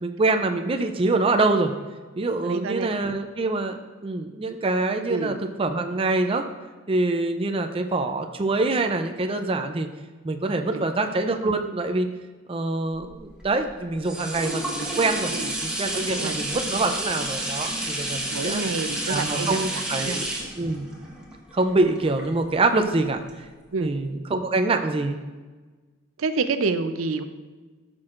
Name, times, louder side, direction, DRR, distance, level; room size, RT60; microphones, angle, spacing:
voice 1, 0.0-1.7 2.2-3.8 4.0-6.4 6.9-9.9 10.2-12.1 12.5-15.3 15.6-18.6 19.1-20.2 20.6-20.9 21.5-23.2 23.8-25.2, right 2 dB, 25° right, 6 dB, 0.4 m, -25 dB
voice 2, 2.4-2.9 5.1-5.4 10.7-10.9 15.3-15.5 16.1-16.6 18.3-20.2 23.7-24.0 26.2-27.2, right 4 dB, 75° right, 9 dB, 0.6 m, -28 dB
sound 1, 13.0-22.8 23.3-23.4, right 1 dB, 5° right, 1.2 m, -30 dB
14.0 x 6.1 x 2.5 m, 1.3 s
head